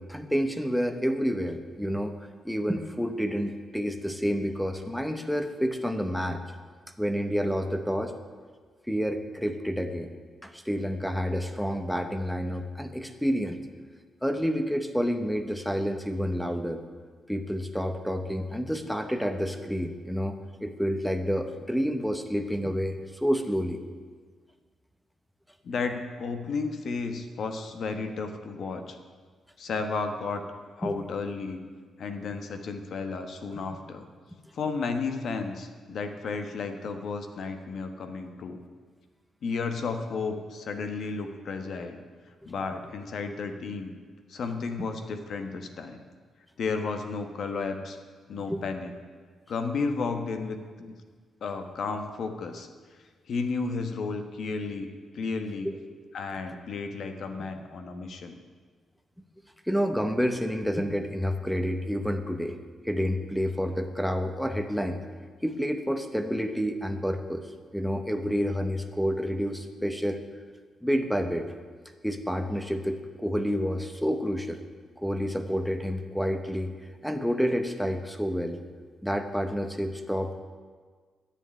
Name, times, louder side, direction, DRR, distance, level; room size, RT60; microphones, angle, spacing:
voice 1, 0.0-2.2 2.4-6.4 7.0-8.2 8.9-10.1 10.4-13.6 14.2-16.8 17.3-20.3 20.6-23.8 30.8-31.0 42.4-42.5 48.5-48.6 55.6-55.8 59.6-62.6 62.8-65.0 65.4-67.5 67.7-70.2 70.8-71.5 72.0-74.6 75.0-76.7 77.0-78.6 79.0-80.3, equal, ahead, 7 dB, 0.9 m, -29 dB
voice 2, 25.6-29.0 29.6-30.4 30.8-31.6 32.0-34.1 34.5-38.6 39.4-42.0 42.5-43.9 44.3-46.0 46.6-48.0 48.3-48.9 49.5-50.9 51.4-52.7 53.3-54.9 55.1-55.7 56.1-58.4, left 4 dB, 60° left, 6 dB, 1.3 m, -33 dB
10.5 x 7.6 x 9.5 m, 1.6 s
cardioid pair, 125°, 0 cm